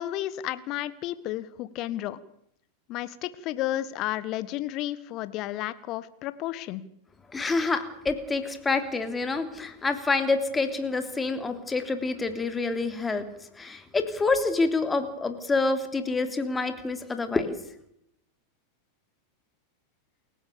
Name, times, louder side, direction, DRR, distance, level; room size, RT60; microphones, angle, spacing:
voice 1, 0.0-2.2 2.9-6.8, left 14 dB, 40° left, 15 dB, 1.6 m, -32 dB
voice 2, 7.3-13.2 13.6-17.5, left 3 dB, 15° left, 8 dB, 3.2 m, -27 dB
29.0 x 16.5 x 6.9 m, 0.75 s
figure-of-eight pair, 90°, 0 cm